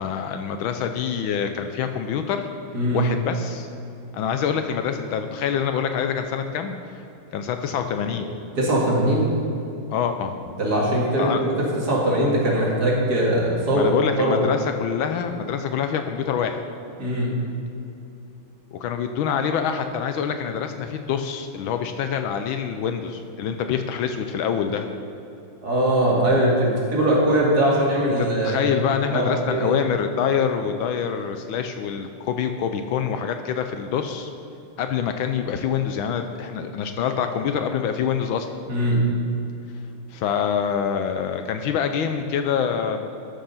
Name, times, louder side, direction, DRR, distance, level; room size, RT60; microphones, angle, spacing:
voice 1, 0.0-2.5 2.9-3.7 4.1-6.7 7.3-8.3 9.9-10.3 11.2-11.4 13.7-16.6 18.7-24.9 28.2-34.3 34.8-38.5 40.1-43.2, left 7 dB, 75° left, 7 dB, 1.3 m, -25 dB
voice 2, 8.6-9.3 10.6-14.4 17.0-17.3 25.6-28.6 29.1-29.7 38.7-39.0, right 1 dB, 45° right, -4 dB, 2.6 m, -21 dB
13.0 x 6.5 x 5.6 m, 2.8 s
omnidirectional pair, 2.4 m